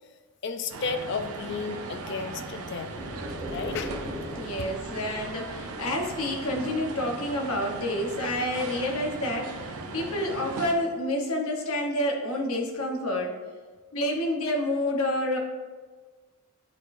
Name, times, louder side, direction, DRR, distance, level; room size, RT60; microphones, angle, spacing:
voice 1, 0.4-3.0 3.5-4.0 4.6-4.7, left 4 dB, 50° left, 9 dB, 0.4 m, -33 dB
sound 1, 0.7-10.7, right 3 dB, 85° right, 0.6 m, -38 dB
sound 2, 3.0-6.7, equal, 30° left, 1.5 m, -40 dB
voice 2, 4.3-13.3 13.9-15.4, left 1 dB, 80° left, 1 dB, 1.0 m, -29 dB
9.4 x 4.0 x 2.6 m, 1.4 s
head